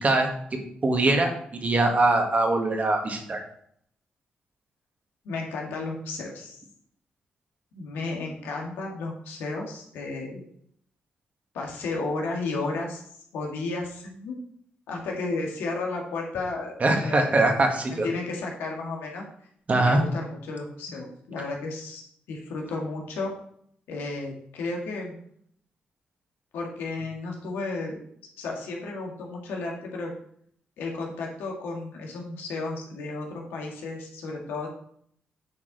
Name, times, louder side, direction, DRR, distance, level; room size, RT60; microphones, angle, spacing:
voice 1, 0.0-1.3 1.6-3.4 16.8-18.1 19.7-20.0, right 2 dB, 45° right, 3 dB, 1.8 m, -22 dB
voice 2, 5.2-6.6 7.7-10.4 11.5-13.0 13.3-14.4 14.9-16.8 17.0-17.3 18.0-19.2 19.8-22.0 22.3-23.3 23.9-25.1 26.5-28.0 28.4-30.1 30.8-34.7, left 3 dB, 85° left, 0 dB, 1.7 m, -33 dB
8.6 x 4.7 x 4.0 m, 0.67 s
supercardioid pair, 50°, 4 cm